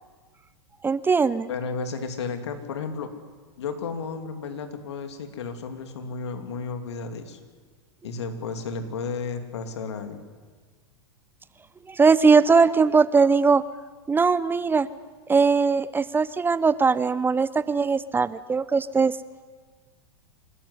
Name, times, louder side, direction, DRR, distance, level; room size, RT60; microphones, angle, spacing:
voice 1, 0.8-1.5 11.9-13.6 14.1-14.9 15.3-19.2, right 5 dB, 15° right, 17 dB, 0.6 m, -20 dB
voice 2, 1.5-3.1 3.6-7.4 8.0-10.2, left 4 dB, 75° left, 8 dB, 2.9 m, -33 dB
28.0 x 13.5 x 9.9 m, 1.5 s
hypercardioid pair, 105°, 14 cm